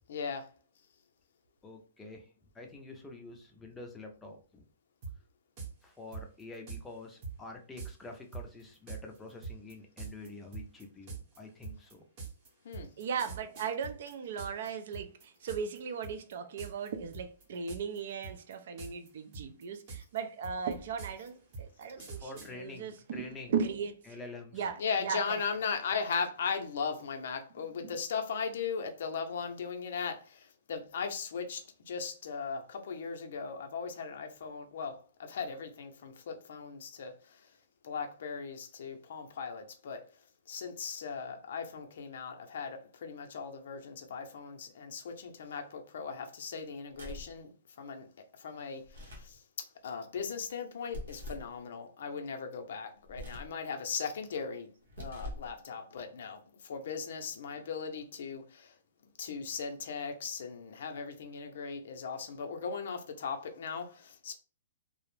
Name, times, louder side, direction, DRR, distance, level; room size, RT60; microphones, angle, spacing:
voice 1, 0.1-0.5 12.6-12.9 24.8-37.1 37.8-40.0 40.5-47.5 47.8-48.1 48.4-49.4 49.8-54.7 55.0-58.7 59.2-64.3, left 5 dB, 65° left, 0.5 m, -38 dB
voice 2, 1.6-2.3 2.5-4.6 5.8-12.0 22.1-23.5 24.1-24.7, left 3 dB, 10° left, 0.5 m, -47 dB
sound 1, 5.0-5.1 5.6-5.7 6.1-6.8 7.2-7.3 7.8-7.9 8.3-14.7 14.9-15.8 16.0-16.3 16.6-16.9 17.1-18.0 18.2-19.1 19.3-22.5, right 5 dB, 30° right, 0.8 m, -43 dB
voice 3, 13.0-24.0 24.5-25.4 27.8-27.9, right 6 dB, 60° right, 0.4 m, -37 dB
sound 2, 46.9-47.4 48.8-49.4 50.9-51.5 53.1-53.6 54.8-55.5, left 1 dB, 90° right, 0.8 m, -43 dB
2.4 x 2.0 x 3.1 m
hypercardioid pair, 155°, 0 cm